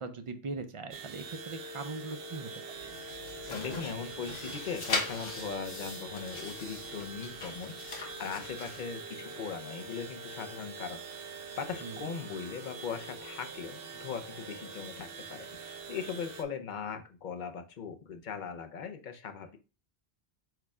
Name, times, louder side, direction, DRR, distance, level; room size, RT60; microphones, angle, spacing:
voice 1, 0.0-3.0 11.8-12.1, right 4 dB, 45° right, 9 dB, 0.4 m, -41 dB
sound 1, 0.9-16.4, right 3 dB, 70° right, 0.8 m, -44 dB
sound 2, 2.7-8.8, left 3 dB, 80° left, 1.3 m, -40 dB
voice 2, 3.5-19.6, left 6 dB, 55° left, 8 dB, 0.7 m, -40 dB
4.7 x 2.2 x 4.7 m, 0.32 s
omnidirectional pair, 1.1 m